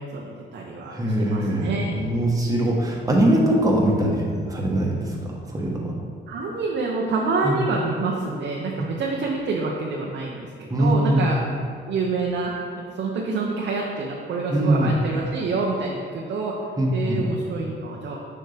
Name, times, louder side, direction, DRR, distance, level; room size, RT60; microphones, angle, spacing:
voice 1, 0.0-1.9 6.3-11.4 11.9-16.5 16.9-18.2, right 3 dB, 65° right, -2 dB, 0.8 m, -27 dB
voice 2, 0.9-5.9 7.4-7.6 10.7-11.3 14.5-14.9 16.8-17.2, right 1 dB, 15° right, -3 dB, 1.3 m, -22 dB
6.4 x 5.4 x 3.4 m, 2.1 s
cardioid pair, 90°, 20 cm